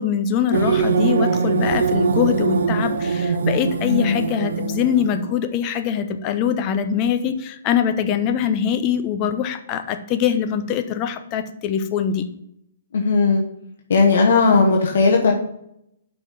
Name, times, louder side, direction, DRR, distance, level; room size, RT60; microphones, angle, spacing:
voice 1, 0.0-12.3, left 8 dB, 30° left, 8 dB, 0.7 m, -23 dB
sound 1, 0.5-5.4, right 5 dB, 75° right, 0.6 m, -22 dB
voice 2, 3.8-4.2 12.9-13.4 13.9-15.3, left 4 dB, 65° left, 0 dB, 1.3 m, -16 dB
5.7 x 5.2 x 5.8 m, 0.76 s
hypercardioid pair, 155°, 0 cm